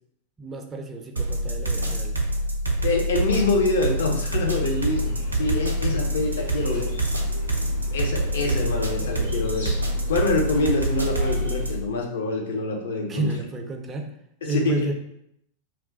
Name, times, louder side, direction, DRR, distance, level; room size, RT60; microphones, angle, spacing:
voice 1, 0.4-2.2 6.4-6.9 13.1-14.1 14.4-14.9, right 2 dB, 20° right, 4 dB, 0.4 m, -31 dB
sound 1, 1.2-11.8, right 1 dB, 85° right, 0.4 m, -26 dB
voice 2, 2.8-6.9 7.9-9.7 10.1-13.3 14.4-14.8, left 3 dB, 60° left, 2 dB, 0.5 m, -25 dB
sound 2, 4.5-11.8, left 1 dB, 85° left, 1.1 m, -39 dB
2.3 x 2.2 x 3.6 m, 0.76 s
figure-of-eight pair, 90°, 0 cm